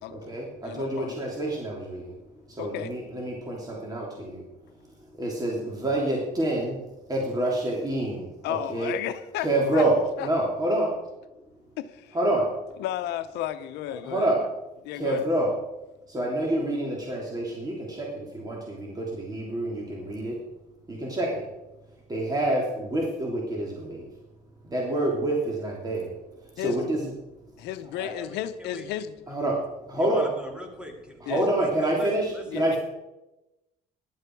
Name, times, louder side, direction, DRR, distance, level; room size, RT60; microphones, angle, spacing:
voice 1, 0.1-2.1 2.6-4.4 5.2-6.8 7.1-8.9 9.4-10.9 12.1-12.4 14.0-14.4 14.9-15.5 16.1-20.3 20.9-21.3 22.1-24.0 24.7-26.1 26.6-27.1 27.9-28.1 29.3-29.5 29.9-30.3 31.2-32.8, right 1 dB, 20° right, -2 dB, 3.2 m, -27 dB
voice 2, 0.6-1.2 2.6-2.9 8.4-9.9 10.2-10.3 11.8-12.0 12.8-14.3 14.8-15.3 26.6-26.8 27.6-29.1 31.3-31.5 32.5-32.8, left 12 dB, 90° left, 11 dB, 0.7 m, -33 dB
voice 3, 28.1-28.8 30.0-32.4, left 1 dB, 5° right, 2 dB, 3.0 m, -41 dB
15.0 x 11.5 x 4.7 m, 0.98 s
cardioid pair, 110°, 17 cm